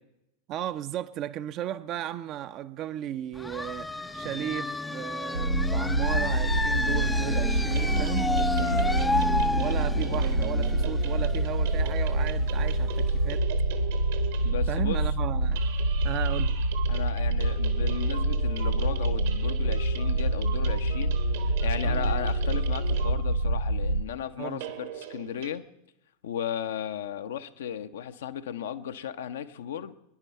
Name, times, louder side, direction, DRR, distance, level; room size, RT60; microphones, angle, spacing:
voice 1, 0.5-8.3 9.6-13.4 14.7-15.6 16.0-16.6 21.8-22.1 24.4-24.6, right 12 dB, 35° right, 0.6 m, -35 dB
sound 1, 3.4-12.8, left 2 dB, 10° left, 0.5 m, -31 dB
sound 2, 5.3-24.0, right 1 dB, 80° right, 0.6 m, -26 dB
sound 3, 7.7-14.8 15.4-23.5 24.5-25.5, right 10 dB, 55° right, 1.2 m, -41 dB
voice 2, 8.5-8.9 14.4-15.0 16.9-21.1 21.4-25.6 26.2-30.0, left 9 dB, 60° left, 0.7 m, -35 dB
23.5 x 10.5 x 4.4 m
figure-of-eight pair, 90°, 0 cm